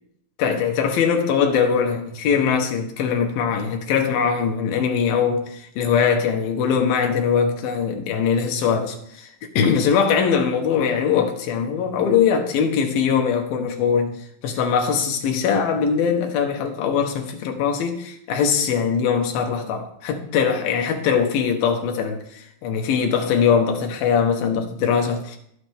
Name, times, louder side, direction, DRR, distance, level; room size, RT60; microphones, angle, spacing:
voice 1, 0.4-9.3 9.5-14.2 14.4-25.4, left 6 dB, 85° left, 3.1 m, -21 dB
18.0 x 6.5 x 3.6 m
omnidirectional pair, 4.1 m